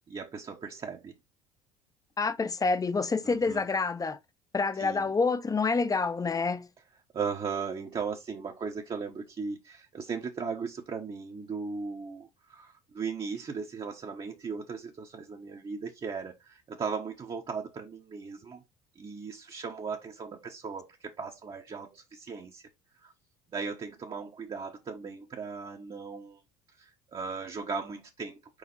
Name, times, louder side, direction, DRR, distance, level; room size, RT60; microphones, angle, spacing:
voice 1, 0.1-1.1 3.2-3.6 4.8-5.1 7.1-18.6 18.9-22.6 23.0-23.1 23.5-26.4 26.8-28.6, right 5 dB, 30° right, 1.3 m, -37 dB
voice 2, 2.2-4.2 4.5-6.7, left 4 dB, 20° left, 1.0 m, -27 dB
5.0 x 4.9 x 4.1 m
hypercardioid pair, 70°, 16 cm